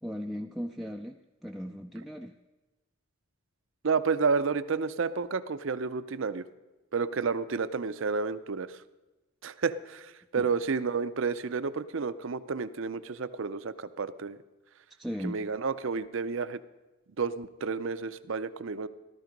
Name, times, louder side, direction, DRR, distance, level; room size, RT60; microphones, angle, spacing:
voice 1, 0.0-2.3 10.4-10.5 15.0-15.4, equal, ahead, 1 dB, 0.4 m, -37 dB
voice 2, 3.8-6.4 6.9-8.8 9.4-14.4 15.2-16.6 17.2-18.9, right 5 dB, 65° right, 14 dB, 0.6 m, -31 dB
14.5 x 13.0 x 5.2 m, 1.1 s
head